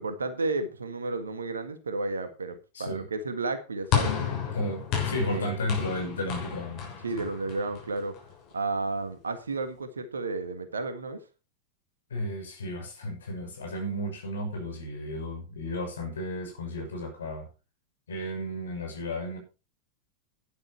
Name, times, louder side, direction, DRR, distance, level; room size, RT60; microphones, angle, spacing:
voice 1, 0.0-4.3 5.2-5.5 7.0-8.2 8.5-11.2, right 3 dB, 75° right, 1.7 m, -32 dB
voice 2, 2.7-3.1 4.5-7.3 12.1-17.5 18.1-19.4, left 1 dB, 65° left, 6.0 m, -33 dB
sound 1, 3.9-8.3, left 8 dB, 40° left, 6.6 m, -31 dB
12.0 x 11.0 x 4.4 m
figure-of-eight pair, 90°, 0 cm